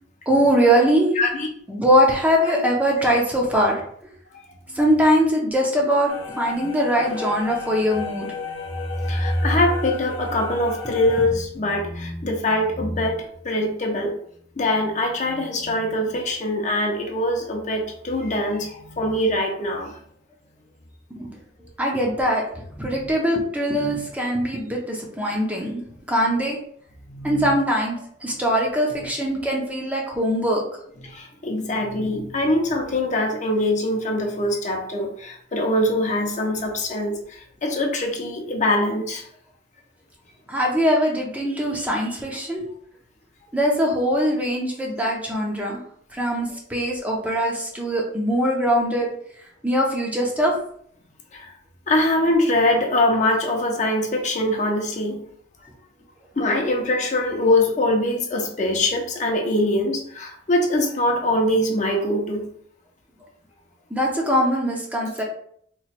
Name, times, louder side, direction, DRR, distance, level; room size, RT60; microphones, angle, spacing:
voice 1, 0.3-1.2 1.7-3.8 4.7-8.3 21.2-21.3 21.8-22.4 22.8-25.8 26.1-26.6 27.2-30.6 40.5-42.6 43.5-45.8 46.1-49.1 49.6-50.5 63.9-65.2, equal, 10° right, -1 dB, 0.6 m, -21 dB
voice 2, 1.2-1.5 6.6-6.7 9.1-13.2 13.4-14.1 14.6-19.9 22.7-23.1 23.7-24.0 27.1-27.5 31.0-39.2 51.3-51.5 51.9-55.2 56.4-62.5, left 1 dB, 40° left, 2 dB, 0.6 m, -23 dB
sound 1, 6.1-11.2, left 4 dB, 75° left, 0.8 m, -34 dB
3.0 x 2.2 x 4.2 m, 0.64 s
head